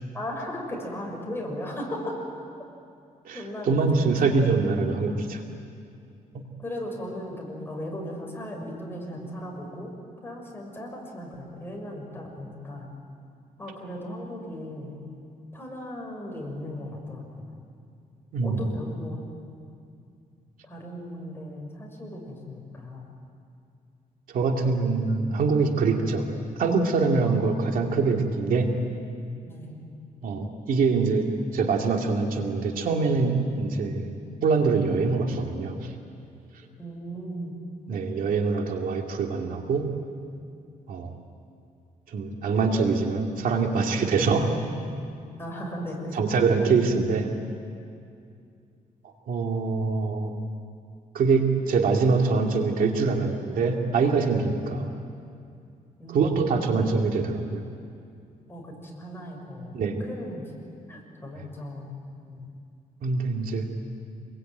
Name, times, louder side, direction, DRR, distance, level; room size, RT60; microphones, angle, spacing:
voice 1, 0.1-2.2 3.3-4.2 6.6-9.9 10.2-12.9 13.6-15.0 15.5-17.6 18.4-19.2 20.6-23.1 27.3-27.4 29.4-29.9 36.8-37.6 45.4-46.2 56.0-56.7 58.5-60.5 60.9-62.0 62.2-62.5, equal, 15° left, 0 dB, 6.6 m, -37 dB
voice 2, 3.3-5.4 6.3-6.4 18.3-18.6 24.3-26.2 26.6-28.7 30.2-35.8 37.9-39.9 40.9-41.1 42.1-44.6 46.1-47.3 49.3-50.3 51.1-54.9 56.1-57.6 59.7-60.0 63.0-63.7, right 4 dB, 75° right, 2 dB, 2.6 m, -24 dB
27.0 x 22.0 x 9.3 m, 2.4 s
cardioid pair, 120°, 15 cm